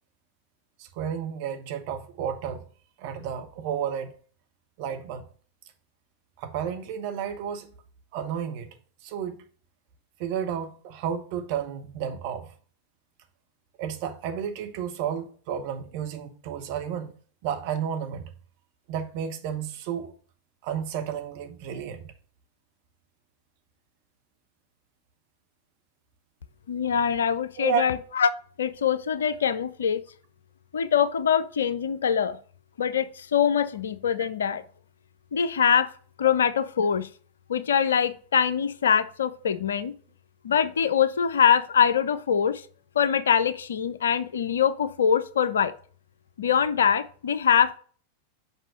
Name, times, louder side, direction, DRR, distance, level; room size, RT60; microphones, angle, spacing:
voice 1, 0.8-2.6 3.0-4.1 4.8-5.3 6.4-7.7 8.1-8.7 9.0-9.4 10.2-12.5 13.8-17.1 17.4-18.3 18.9-20.1 20.6-22.1 27.6-27.9 34.2-34.3, right 8 dB, 45° right, 1.1 m, -32 dB
voice 2, 26.7-28.3 28.6-30.0 30.7-32.4 32.8-34.6 35.3-35.9 36.2-37.1 37.5-39.9 40.4-42.6 43.0-45.7 46.4-47.8, left 8 dB, 65° left, 0.5 m, -23 dB
5.7 x 5.5 x 5.0 m
figure-of-eight pair, 90°, 0 cm